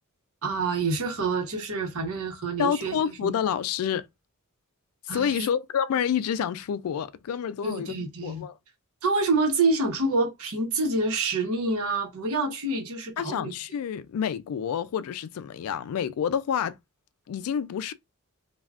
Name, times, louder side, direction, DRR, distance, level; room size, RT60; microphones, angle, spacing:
voice 1, 0.4-3.3 5.1-5.5 7.6-8.4 9.0-13.5, right 3 dB, 70° right, 0.9 m, -27 dB
voice 2, 2.6-4.1 5.1-7.9 8.2-8.5 13.2-16.8 17.3-17.9, left 8 dB, 70° left, 0.3 m, -28 dB
3.4 x 2.3 x 2.3 m
head